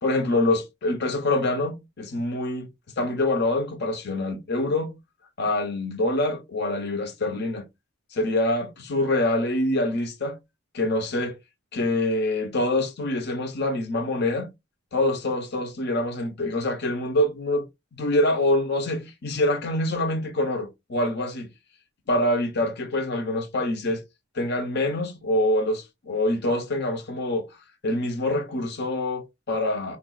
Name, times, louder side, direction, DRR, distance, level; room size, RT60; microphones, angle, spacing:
voice 1, 0.0-2.7 3.0-5.0 5.4-7.6 8.1-10.4 10.7-11.3 11.7-14.5 14.9-17.6 18.0-21.5 22.1-24.0 24.3-27.4 27.8-30.0, left 1 dB, 50° left, 0.7 m, -25 dB
3.8 x 2.3 x 2.3 m
head